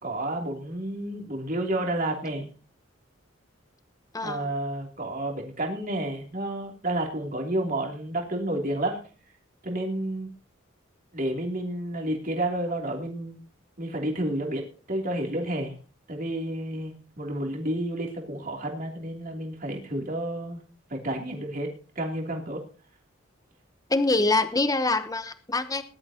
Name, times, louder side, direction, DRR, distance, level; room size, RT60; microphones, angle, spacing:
voice 1, 0.0-2.5 4.2-9.0 9.6-10.3 11.1-13.4 13.8-15.7 16.1-20.6 20.9-21.7 21.9-22.6, right 1 dB, 40° right, 1 dB, 3.1 m, -30 dB
voice 2, 4.1-4.5 23.9-25.8, left 2 dB, 20° left, 10 dB, 0.9 m, -25 dB
20.0 x 12.0 x 2.9 m, 0.38 s
head